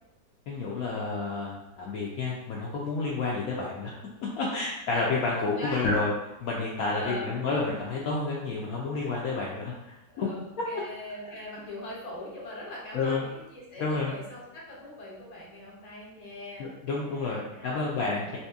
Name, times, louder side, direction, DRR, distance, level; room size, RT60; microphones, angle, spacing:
voice 1, 0.5-4.0 4.4-6.1 6.4-10.3 12.9-13.2 13.8-14.1 16.6-18.4, left 3 dB, 90° left, -4 dB, 0.7 m, -30 dB
voice 2, 5.6-6.0 6.9-7.3 10.1-17.8, left 1 dB, 40° left, -4 dB, 0.5 m, -41 dB
3.1 x 2.8 x 3.4 m, 0.96 s
omnidirectional pair, 2.1 m